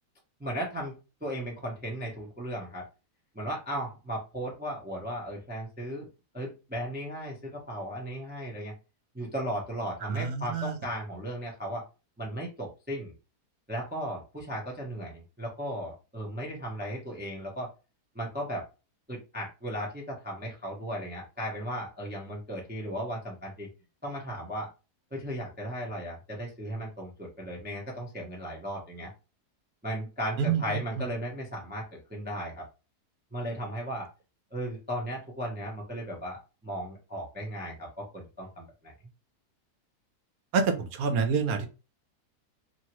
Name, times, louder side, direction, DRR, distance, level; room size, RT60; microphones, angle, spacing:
voice 1, 0.4-0.9 1.2-2.8 3.3-6.1 6.3-8.7 9.1-11.8 12.2-13.1 13.7-17.7 18.1-18.6 19.1-23.7 24.0-24.7 25.1-29.1 29.8-32.6 33.3-34.1 34.5-38.9, equal, 15° right, -2 dB, 0.3 m, -36 dB
voice 2, 10.0-10.8 30.4-30.8 40.5-41.7, right 6 dB, 75° right, 7 dB, 1.0 m, -27 dB
2.8 x 2.7 x 2.9 m, 0.31 s
omnidirectional pair, 1.7 m